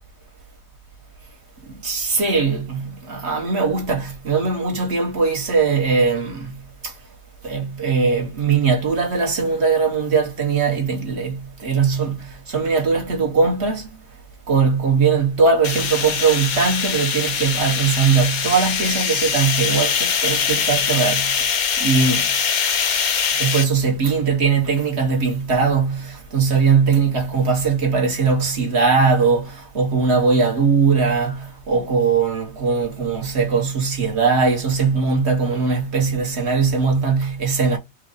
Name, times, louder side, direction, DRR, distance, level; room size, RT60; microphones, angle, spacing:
voice 1, 1.8-6.9 7.4-13.8 14.5-21.4 21.8-22.3 23.4-37.8, right 5 dB, 50° right, 1.7 m, -20 dB
sound 1, 15.6-23.6, left 7 dB, 85° left, 1.3 m, -22 dB
4.6 x 2.5 x 3.9 m
omnidirectional pair, 1.5 m